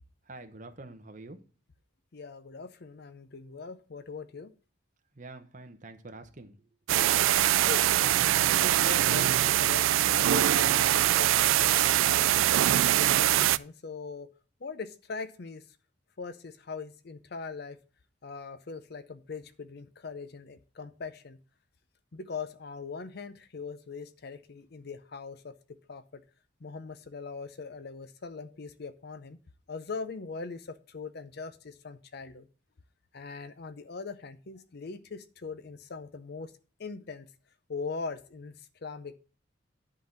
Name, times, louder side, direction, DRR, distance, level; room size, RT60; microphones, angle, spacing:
voice 1, 0.2-1.4 5.1-6.5, right 2 dB, 40° right, 6 dB, 1.0 m, -46 dB
voice 2, 2.1-4.5 7.7-7.9 8.5-12.5 12.8-14.3 14.6-15.7 16.2-17.8 18.2-21.4 22.1-26.2 26.6-29.4 29.7-32.5 33.1-36.5 36.8-37.3 37.7-39.2, left 4 dB, 55° left, 13 dB, 0.6 m, -41 dB
sound 1, 6.9-13.6, right 13 dB, 90° right, 0.3 m, -23 dB
10.5 x 3.9 x 7.2 m, 0.38 s
head